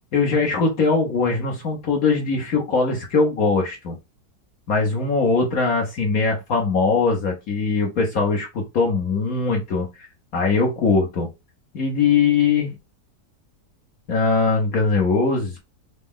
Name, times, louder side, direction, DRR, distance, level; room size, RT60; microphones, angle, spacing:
voice 1, 0.1-4.0 4.7-10.1 10.3-11.3 11.7-12.7 14.1-15.6, left 4 dB, 60° left, 1.3 m, -21 dB
4.1 x 2.2 x 3.6 m
omnidirectional pair, 1.9 m